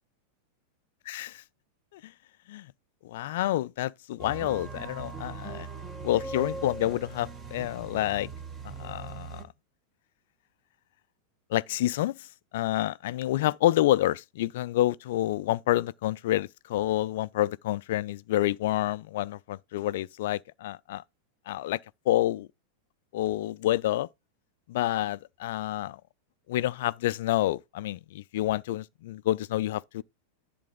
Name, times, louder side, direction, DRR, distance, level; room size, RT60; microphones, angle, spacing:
voice 1, 1.1-1.4 1.9-2.1 2.5-2.7 3.0-5.7 6.0-8.3 8.6-9.5 11.5-12.3 12.5-21.0 21.5-21.8 22.1-22.5 23.1-24.1 24.7-26.0 26.5-30.0, left 14 dB, 55° left, 0.4 m, -28 dB
sound 1, 4.2-9.4, right 4 dB, 20° right, 1.5 m, -40 dB
10.5 x 3.5 x 5.4 m
figure-of-eight pair, 90°, 0 cm